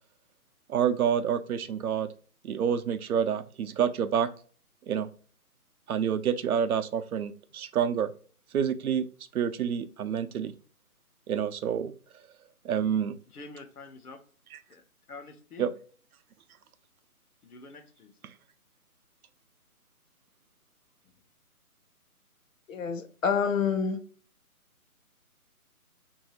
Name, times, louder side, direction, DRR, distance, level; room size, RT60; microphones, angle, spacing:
voice 1, 0.7-2.1 2.4-4.3 4.9-5.1 5.9-8.1 8.5-9.0 9.3-10.5 11.3-11.9 12.6-13.1 15.6-15.7, right 8 dB, 75° right, 0.5 m, -28 dB
voice 2, 13.3-14.2 14.7-15.7 17.4-18.1 21.0-21.1, left 3 dB, 85° left, 0.9 m, -47 dB
voice 3, 22.7-24.0, left 6 dB, 60° left, 0.6 m, -27 dB
2.8 x 2.7 x 2.9 m
hypercardioid pair, 165°, 44 cm